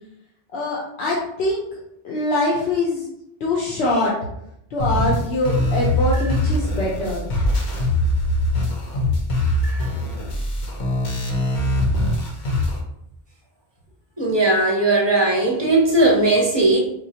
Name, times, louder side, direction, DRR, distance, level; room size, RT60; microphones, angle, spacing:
voice 1, 0.5-1.6 2.0-3.0 3.4-4.1 4.7-7.2, left 2 dB, 90° left, -3 dB, 0.9 m, -23 dB
sound 1, 4.8-12.8, left 1 dB, 55° left, 0.7 m, -22 dB
voice 2, 14.2-16.8, right 2 dB, 35° right, -2 dB, 0.5 m, -18 dB
4.3 x 2.2 x 2.7 m, 0.79 s
omnidirectional pair, 1.0 m